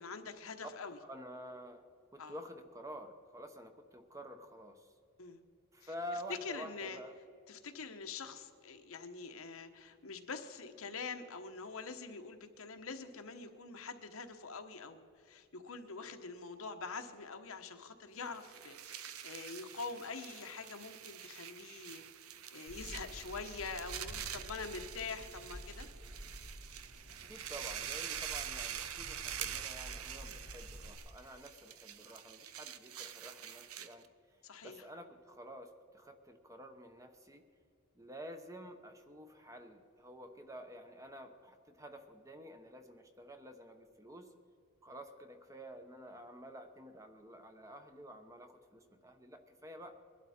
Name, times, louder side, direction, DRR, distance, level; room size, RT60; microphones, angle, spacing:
voice 1, 0.0-1.0 2.2-2.4 5.2-5.4 5.8-5.9 6.3-7.0 7.5-22.0 22.5-25.9 34.4-34.8, left 4 dB, 80° left, 6 dB, 1.1 m, -45 dB
voice 2, 1.1-1.8 2.1-4.9 5.7-7.1 27.3-34.4 34.6-37.4 38.0-44.3 44.8-50.0, equal, 15° right, 7 dB, 0.8 m, -50 dB
sound 1, 18.3-34.1, right 10 dB, 90° right, 0.7 m, -45 dB
sound 2, 22.7-30.9, equal, 50° right, 1.5 m, -51 dB
21.5 x 12.0 x 4.3 m, 2.4 s
head